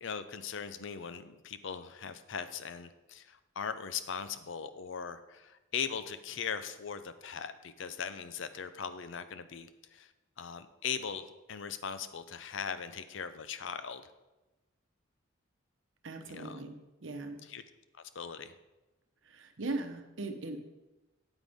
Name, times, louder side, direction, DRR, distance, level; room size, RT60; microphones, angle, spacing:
voice 1, 0.0-10.1 10.4-14.1 16.3-16.6 17.5-17.6 18.1-18.5, left 6 dB, 65° left, 12 dB, 0.6 m, -39 dB
voice 2, 16.0-17.4 19.2-20.6, right 2 dB, 65° right, 6 dB, 0.9 m, -39 dB
9.1 x 8.2 x 3.5 m, 1.0 s
head